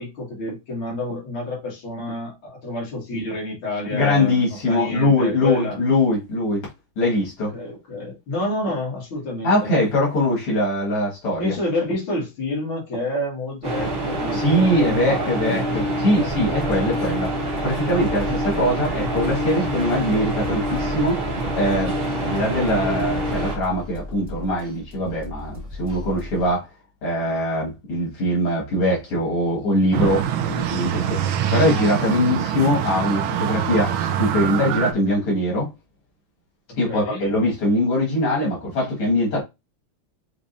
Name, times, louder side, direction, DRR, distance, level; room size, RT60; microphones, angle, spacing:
voice 1, 0.0-5.8 7.5-9.7 11.4-15.6 36.9-37.2, left 1 dB, 70° left, 2.9 m, -29 dB
voice 2, 3.9-6.7 7.0-7.5 9.4-11.5 14.3-17.4 17.6-21.2 21.5-26.7 27.0-35.7 36.8-39.4, left 1 dB, 85° left, 2.9 m, -22 dB
sound 1, 13.6-23.6, right 1 dB, 30° right, 1.3 m, -26 dB
sound 2, 16.3-26.5, left 1 dB, 5° right, 1.5 m, -37 dB
sound 3, 29.9-34.9, right 9 dB, 75° right, 1.4 m, -24 dB
6.1 x 3.3 x 2.6 m
omnidirectional pair, 2.4 m